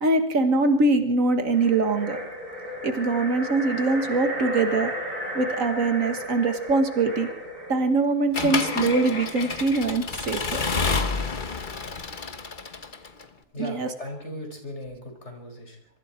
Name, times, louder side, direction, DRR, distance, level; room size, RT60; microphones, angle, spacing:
voice 1, 0.0-2.2 2.8-4.9 5.3-7.3 7.7-10.6 13.6-13.9, right 3 dB, 85° right, 7 dB, 2.0 m, -23 dB
sound 1, 1.4-7.9, equal, 35° right, 5.7 m, -34 dB
Accelerating revving vroom / Mechanisms, 8.3-13.2, left 4 dB, 40° left, 1.4 m, -29 dB
voice 2, 13.5-15.9, left 1 dB, 60° left, 3 dB, 5.5 m, -38 dB
26.5 x 23.5 x 4.5 m, 0.67 s
omnidirectional pair, 1.3 m